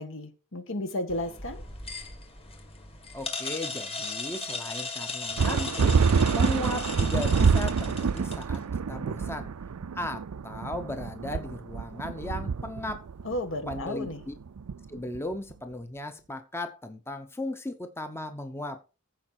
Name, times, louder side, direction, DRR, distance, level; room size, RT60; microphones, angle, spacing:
voice 1, 0.0-1.6 13.2-14.2, left 1 dB, 60° left, 1.7 m, -33 dB
sound 1, 1.1-8.6, left 3 dB, 25° left, 2.2 m, -37 dB
voice 2, 3.1-6.0 6.3-9.5 9.9-13.1 13.7-14.3 14.9-18.8, left 1 dB, 10° left, 0.8 m, -36 dB
sound 2, 5.4-15.3, right 5 dB, 75° right, 0.5 m, -27 dB
15.0 x 5.4 x 4.5 m
head